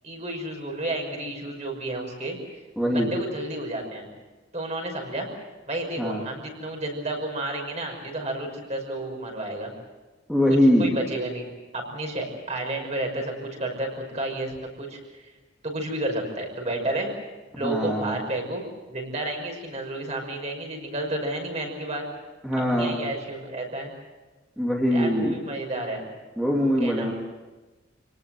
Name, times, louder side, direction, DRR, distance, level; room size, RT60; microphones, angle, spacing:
voice 1, 0.0-2.4 2.9-4.1 4.5-5.3 5.7-9.7 10.8-11.5 11.7-15.3 15.6-17.1 17.5-22.0 22.7-23.9 24.9-26.1 26.8-27.1, right 1 dB, 35° right, 2 dB, 5.9 m, -31 dB
voice 2, 2.8-3.1 6.0-6.2 10.3-10.9 17.6-18.2 22.4-23.0 24.6-25.4 26.4-27.1, equal, 5° right, -3 dB, 2.9 m, -22 dB
28.0 x 19.0 x 7.9 m, 1.2 s
head